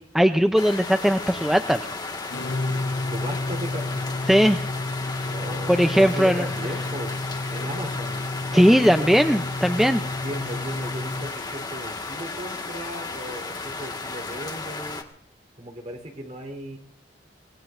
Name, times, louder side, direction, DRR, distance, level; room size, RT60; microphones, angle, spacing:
voice 1, 0.0-1.8 4.3-4.6 5.7-6.4 8.5-10.0, equal, ahead, 6 dB, 0.6 m, -19 dB
sound 1, 0.6-15.0, left 3 dB, 25° left, 1.8 m, -34 dB
sound 2, 2.3-11.3, left 2 dB, 70° left, 0.8 m, -31 dB
voice 2, 3.0-4.2 5.3-7.2 7.5-9.1 10.2-15.0 15.6-16.8, equal, 40° right, 3 dB, 3.9 m, -36 dB
25.5 x 18.5 x 2.6 m, 0.65 s
head